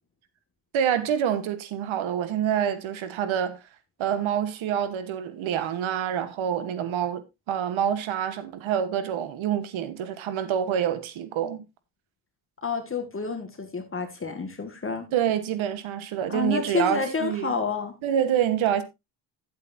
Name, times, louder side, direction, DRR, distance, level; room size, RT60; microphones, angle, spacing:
voice 1, 0.7-3.6 4.0-11.6 15.1-17.6 18.0-18.8, right 9 dB, 85° right, 1.3 m, -27 dB
voice 2, 12.6-15.1 16.3-17.9, left 4 dB, 25° left, 2.0 m, -29 dB
12.0 x 8.4 x 2.7 m
cardioid pair, 110°, 46 cm